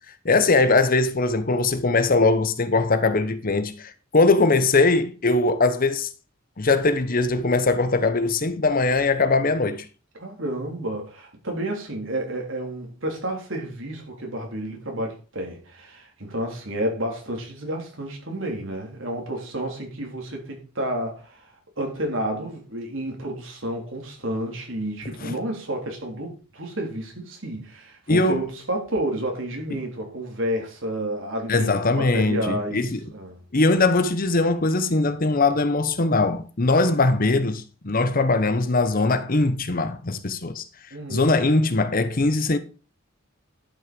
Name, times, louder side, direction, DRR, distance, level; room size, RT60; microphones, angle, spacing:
voice 1, 0.2-6.1 6.6-9.8 25.2-25.3 28.1-28.4 31.5-33.0 33.5-40.6 41.1-42.6, left 3 dB, 45° left, 0.9 m, -21 dB
voice 2, 10.1-21.5 21.8-33.4 40.9-41.3, right 1 dB, 65° right, 3.5 m, -30 dB
11.0 x 6.4 x 5.2 m
head